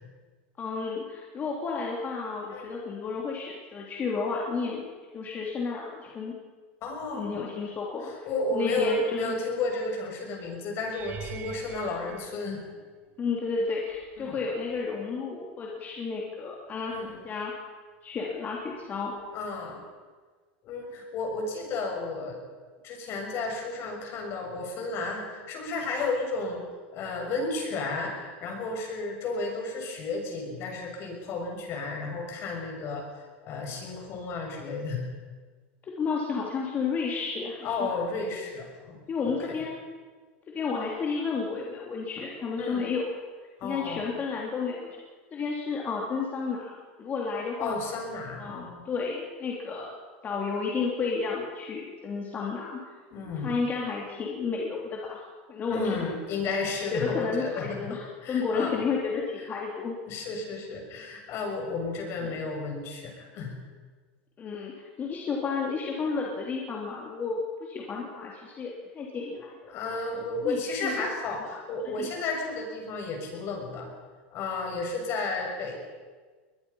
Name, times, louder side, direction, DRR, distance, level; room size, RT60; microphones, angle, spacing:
voice 1, 0.6-4.8 5.1-6.4 7.1-8.1 8.5-9.4 12.1-12.2 13.2-17.5 18.0-19.1 35.8-37.6 39.1-39.8 40.5-43.0 43.6-45.0 45.3-47.7 48.4-50.0 50.2-52.8 53.4-55.2 55.5-56.0 56.9-60.0 62.2-62.4 64.4-64.7 65.0-69.8 70.4-71.1 71.8-72.1, left 5 dB, 30° left, -2 dB, 3.3 m, -32 dB
voice 2, 6.8-7.4 8.3-12.6 14.2-14.4 16.9-17.2 19.3-19.8 20.6-22.4 22.8-26.6 26.9-33.1 33.4-35.0 37.6-39.0 39.2-39.3 42.6-42.9 43.6-44.1 47.6-48.8 53.1-53.6 55.7-58.9 60.1-63.5 69.7-73.9 74.3-75.8, left 3 dB, 45° left, 2 dB, 6.8 m, -32 dB
sound 1, 10.9-13.2 13.9-14.3 14.7-14.8 19.2-19.3, right 7 dB, 30° right, 2.3 m, -44 dB
22.0 x 21.0 x 5.6 m, 1.4 s
supercardioid pair, 120°, 6 cm